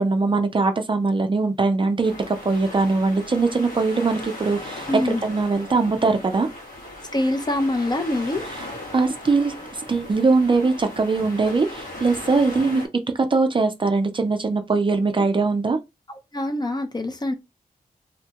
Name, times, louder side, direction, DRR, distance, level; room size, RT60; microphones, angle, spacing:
voice 1, 0.0-6.5 8.5-8.7 8.9-12.8 13.3-15.8, right 3 dB, 35° right, 0.4 m, -21 dB
sound 1, 2.0-12.9, left 1 dB, 70° left, 1.4 m, -38 dB
voice 2, 4.9-5.2 7.1-8.4 16.3-17.3, left 1 dB, 30° left, 0.6 m, -24 dB
2.7 x 2.2 x 2.8 m
wide cardioid pair, 80°, 15 cm